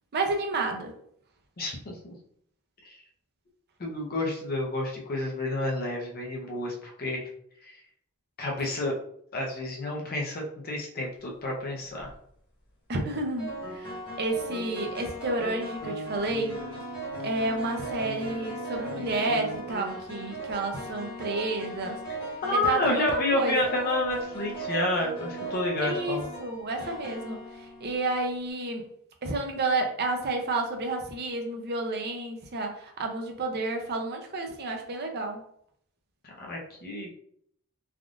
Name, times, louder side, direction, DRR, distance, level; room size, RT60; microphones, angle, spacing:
voice 1, 0.1-0.9 12.9-16.6 17.2-22.0 22.6-23.6 25.8-28.8 29.2-35.4, right 2 dB, 45° right, 3 dB, 0.5 m, -30 dB
voice 2, 1.6-1.9 2.8-3.0 3.8-7.3 7.6-7.7 8.4-9.0 9.3-12.1 22.4-26.3 36.2-37.1, left 2 dB, 40° left, -1 dB, 0.6 m, -29 dB
sound 1, 11.8-12.1 13.4-28.2, right 2 dB, 20° left, 1.1 m, -37 dB
3.5 x 2.4 x 2.4 m, 0.66 s
head